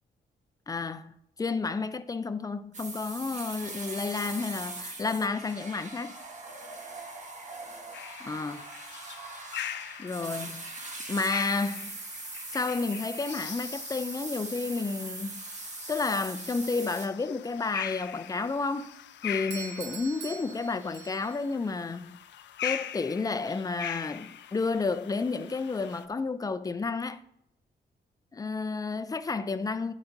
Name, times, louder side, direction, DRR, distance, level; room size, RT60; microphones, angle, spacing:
voice 1, 0.7-6.1 8.2-8.7 10.0-10.7 11.1-12.0 12.5-15.4 15.9-18.9 19.2-22.2 22.6-27.2 28.3-29.9, left 4 dB, 20° left, 0.4 m, -31 dB
sound 1, 2.7-17.1, right 3 dB, 40° right, 1.3 m, -41 dB
sound 2, 7.9-26.0, left 10 dB, 75° left, 0.5 m, -42 dB
Doorbell, 19.5-21.5, right 7 dB, 70° right, 0.7 m, -43 dB
11.0 x 4.3 x 3.8 m
cardioid pair, 100°, 19 cm